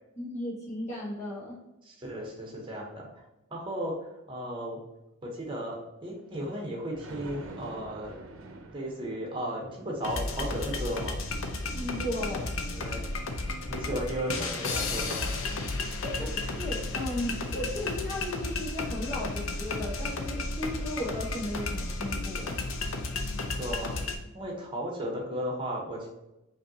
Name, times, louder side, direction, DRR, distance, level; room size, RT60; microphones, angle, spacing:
voice 1, 0.2-1.6 11.7-12.4 13.9-14.0 16.0-22.6, left 1 dB, 35° left, -5 dB, 1.4 m, -35 dB
voice 2, 1.8-3.2 3.5-4.8 5.2-8.2 8.7-11.2 12.7-13.0 13.7-15.3 23.3-24.1 24.3-26.1, equal, 25° right, -1 dB, 1.0 m, -35 dB
Thunder, 6.2-14.5 14.9-15.0, right 2 dB, 65° right, 0.6 m, -50 dB
sound 1, 10.0-24.2, left 3 dB, 70° left, 0.6 m, -33 dB
5.4 x 2.7 x 2.8 m, 0.95 s
head